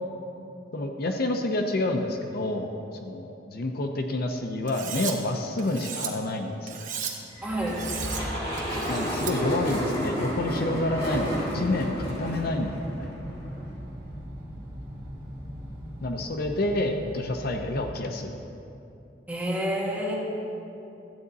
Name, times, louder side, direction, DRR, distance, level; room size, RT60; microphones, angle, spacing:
voice 1, 0.7-6.9 8.9-11.9 12.2-13.1 16.0-18.4, left 2 dB, 55° left, 4 dB, 0.6 m, -28 dB
Cutlery silverware, 4.7-5.1 5.6-6.1 6.7-7.1 7.7-8.2 8.6-9.3, right 7 dB, 45° right, 1.0 m, -35 dB
sound 1, 7.3-13.8, equal, 35° left, 2.2 m, -31 dB
voice 2, 7.4-7.8 19.3-20.1, equal, 10° right, -5 dB, 1.9 m, -28 dB
sound 2, 10.4-17.9, equal, 30° right, 1.9 m, -40 dB
13.5 x 8.6 x 4.1 m, 2.8 s
head